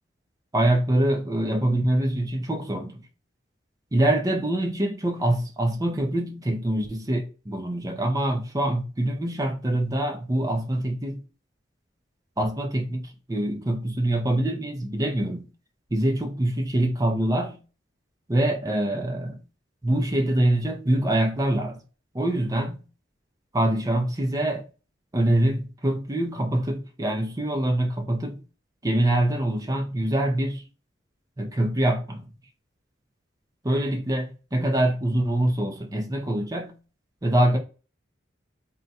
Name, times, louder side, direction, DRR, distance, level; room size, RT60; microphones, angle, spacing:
voice 1, 0.5-3.0 3.9-11.2 12.4-15.5 15.9-17.6 18.3-19.4 19.8-21.8 22.1-22.8 23.5-24.6 25.1-28.4 28.8-30.6 31.4-32.3 33.6-36.7 37.2-37.6, right 1 dB, 20° right, 0.5 m, -24 dB
3.8 x 2.2 x 4.1 m
head